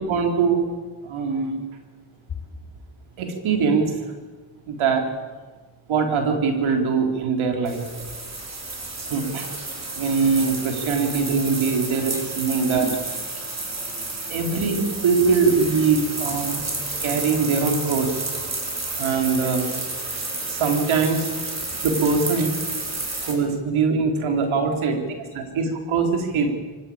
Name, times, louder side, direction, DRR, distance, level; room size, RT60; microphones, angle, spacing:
voice 1, 0.1-0.6 1.0-1.6 3.2-3.9 4.7-5.1 5.9-8.0 9.0-9.5 9.9-12.9 14.3-16.6 17.0-18.2 19.0-19.8 20.4-21.3 21.8-22.5 23.2-25.0 25.3-26.5, right 5 dB, 85° right, 3 dB, 4.1 m, -22 dB
sound 1, 7.6-23.3, right 3 dB, 35° right, 5.7 m, -31 dB
voice 2, 21.4-21.7 22.7-23.0 24.9-25.7, left 7 dB, 55° left, 2 dB, 5.3 m, -37 dB
25.0 x 17.0 x 8.8 m, 1.4 s
cardioid pair, 80°, 47 cm